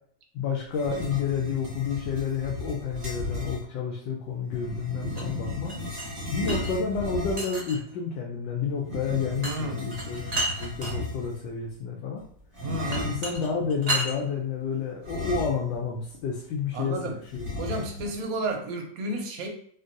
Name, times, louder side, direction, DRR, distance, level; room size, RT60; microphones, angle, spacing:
voice 1, 0.3-5.7 6.3-10.3 10.6-12.2 12.9-17.0 17.8-17.9, left 6 dB, 90° left, -1 dB, 1.3 m, -30 dB
sound 1, 0.7-3.6 4.5-7.6 8.8-11.5 12.5-13.4 15.0-15.9 16.2-16.3 17.3-18.2, left 2 dB, 30° right, 0.5 m, -35 dB
sound 2, 5.1-6.7 7.4-7.9 9.4-9.6 9.9-10.9 12.9-14.1, right 2 dB, 85° right, 0.3 m, -31 dB
voice 2, 9.4-9.9 12.6-13.0 16.7-17.2 17.6-19.5, right 2 dB, 65° right, 2 dB, 0.9 m, -32 dB
3.6 x 2.2 x 2.5 m, 0.62 s
omnidirectional pair, 1.9 m